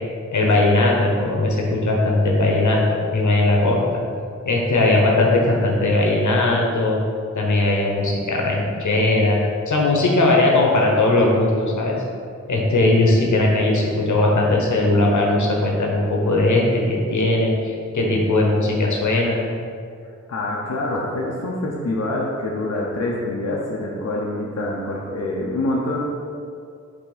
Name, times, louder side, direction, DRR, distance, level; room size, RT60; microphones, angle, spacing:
voice 1, 0.3-4.0 4.4-7.0 7.4-9.4 9.7-12.0 12.5-19.4, left 2 dB, 80° left, -2 dB, 1.1 m, -19 dB
voice 2, 20.3-26.0, left 2 dB, 60° left, -4 dB, 0.8 m, -26 dB
5.9 x 3.5 x 5.0 m, 2.4 s
wide cardioid pair, 100°, 29 cm